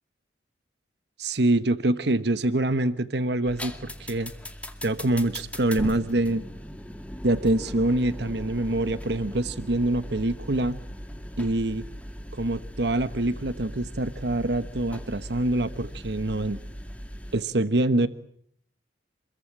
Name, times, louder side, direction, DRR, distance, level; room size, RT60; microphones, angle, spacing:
voice 1, 1.2-4.3 4.8-6.4 7.2-10.8 11.4-11.8 12.3-16.6 17.3-18.1, right 2 dB, 65° right, 12 dB, 1.2 m, -25 dB
sound 1, 3.4-17.4, equal, 10° left, 2.4 m, -39 dB
27.5 x 22.5 x 8.9 m, 0.66 s
head